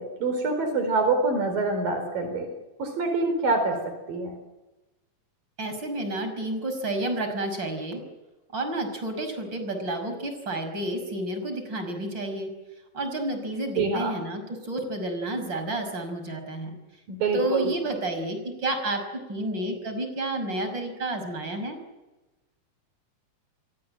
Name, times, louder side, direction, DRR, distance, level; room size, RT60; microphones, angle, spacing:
voice 1, 0.0-2.5 2.8-4.3 13.8-14.1 17.1-17.7, right 3 dB, 90° right, 6 dB, 5.9 m, -26 dB
voice 2, 5.6-8.0 8.5-12.5 12.9-16.8 17.3-21.8, right 1 dB, 30° right, 7 dB, 6.2 m, -30 dB
29.0 x 23.5 x 7.8 m, 1.1 s
omnidirectional pair, 3.9 m